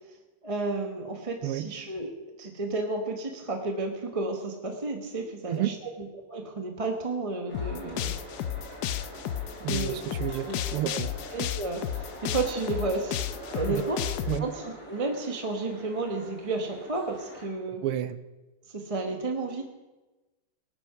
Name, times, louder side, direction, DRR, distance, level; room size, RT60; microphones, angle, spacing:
voice 1, 0.4-2.1 2.4-5.7 6.3-8.1 9.6-10.0 10.5-10.6 11.3-13.2 13.5-14.0 14.4-14.6 14.9-17.8 18.7-19.7, right 3 dB, 25° right, 3 dB, 0.8 m, -32 dB
sound 1, 7.5-14.4, left 11 dB, 90° left, 0.8 m, -32 dB
sound 2, 7.5-17.5, equal, 45° left, 4.9 m, -44 dB
voice 2, 9.6-11.1 13.7-13.8 14.3-14.5 17.8-18.2, right 12 dB, 90° right, 13 dB, 1.6 m, -31 dB
19.0 x 8.8 x 5.9 m, 1.1 s
omnidirectional pair, 2.4 m